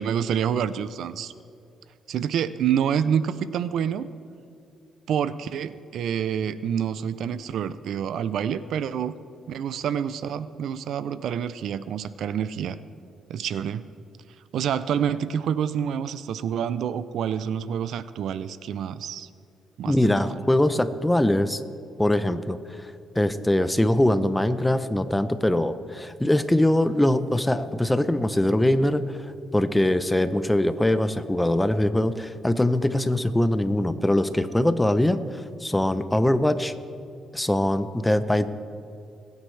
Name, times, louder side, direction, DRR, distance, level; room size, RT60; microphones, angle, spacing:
voice 1, 0.0-1.3 2.1-4.1 5.1-9.1 9.5-12.8 13.3-13.8 14.5-19.3 19.8-20.5, right 8 dB, 75° right, 15 dB, 0.4 m, -27 dB
voice 2, 19.8-21.6 22.0-22.9 23.1-29.2 29.5-36.7 37.3-38.5, left 1 dB, 10° left, 12 dB, 0.7 m, -22 dB
21.0 x 9.5 x 3.3 m, 2.6 s
cardioid pair, 90°, 0 cm